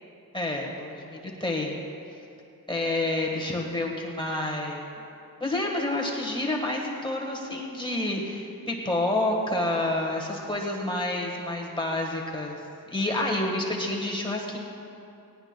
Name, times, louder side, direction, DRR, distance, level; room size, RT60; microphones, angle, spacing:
voice 1, 0.3-1.8 2.7-5.0 5.4-12.5 12.9-14.6, left 1 dB, 15° left, -1 dB, 1.3 m, -29 dB
19.0 x 18.5 x 2.2 m, 2.7 s
wide cardioid pair, 140°, 36 cm